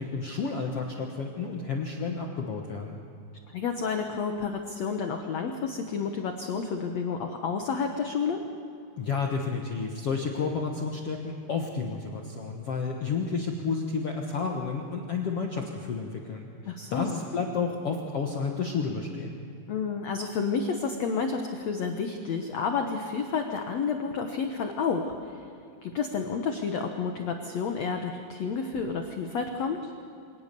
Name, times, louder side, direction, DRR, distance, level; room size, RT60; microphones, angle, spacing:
voice 1, 0.0-3.0 9.0-19.4, left 5 dB, 70° left, 1 dB, 1.4 m, -31 dB
voice 2, 3.5-8.4 16.7-17.2 19.7-25.4 25.8-29.9, left 5 dB, 85° left, 4 dB, 1.5 m, -30 dB
25.0 x 18.5 x 6.9 m, 2.7 s
omnidirectional pair, 4.8 m